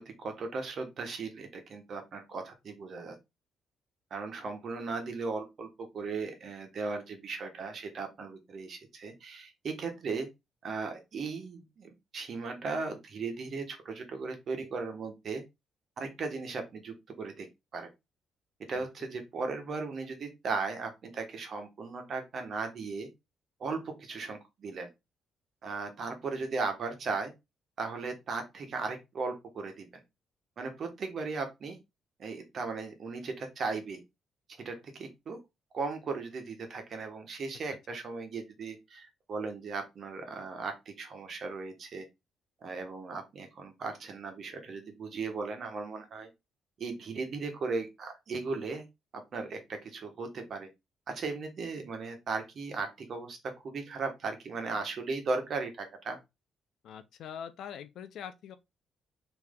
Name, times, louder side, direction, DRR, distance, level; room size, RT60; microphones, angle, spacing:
voice 1, 0.0-3.1 4.1-10.3 10.6-15.4 16.0-17.5 17.7-17.9 18.7-23.1 23.6-24.9 25.6-27.3 27.8-29.9 30.6-31.8 32.2-34.0 34.6-35.4 35.7-42.0 42.6-46.3 46.8-48.8 49.1-50.7 51.1-53.4 53.6-56.2, right 4 dB, 55° right, 1.2 m, -37 dB
voice 2, 56.8-58.6, left 8 dB, 75° left, 0.5 m, -43 dB
3.3 x 3.0 x 3.6 m
cardioid pair, 90°, 0 cm